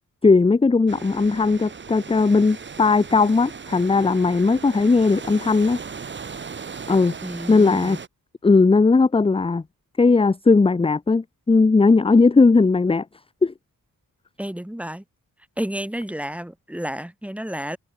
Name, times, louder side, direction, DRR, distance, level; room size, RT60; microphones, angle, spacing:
voice 1, 0.2-5.8 6.9-7.1 7.5-8.0 8.4-9.6 10.0-13.0 13.4-13.5, left 4 dB, 15° left, 0.5 m, -17 dB
sound 1, 0.9-8.1, right 5 dB, 30° right, 0.7 m, -37 dB
voice 2, 7.2-8.0 14.4-15.0 15.6-17.8, equal, 5° right, 1.2 m, -31 dB
wide cardioid pair, 135°, 36 cm